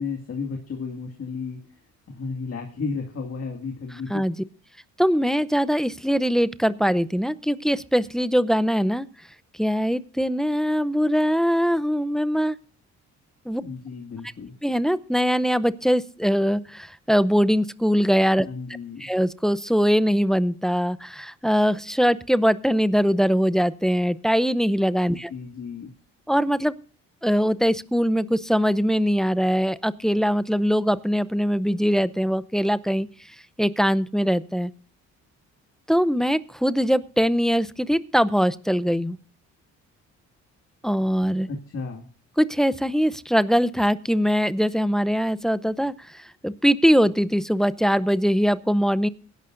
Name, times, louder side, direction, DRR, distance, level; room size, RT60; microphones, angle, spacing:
voice 1, 0.0-1.6 2.1-4.2 13.6-14.6 18.5-19.1 25.3-25.9 41.5-42.1, left 4 dB, 50° left, 2 dB, 2.1 m, -33 dB
voice 2, 5.0-9.1 9.6-12.6 13.5-13.6 14.6-18.5 19.0-25.3 26.3-26.7 27.2-33.1 33.6-34.7 35.9-39.2 40.8-41.5 42.4-49.1, equal, ahead, 15 dB, 0.6 m, -22 dB
22.0 x 11.0 x 2.5 m, 0.40 s
cardioid pair, 90°, 30 cm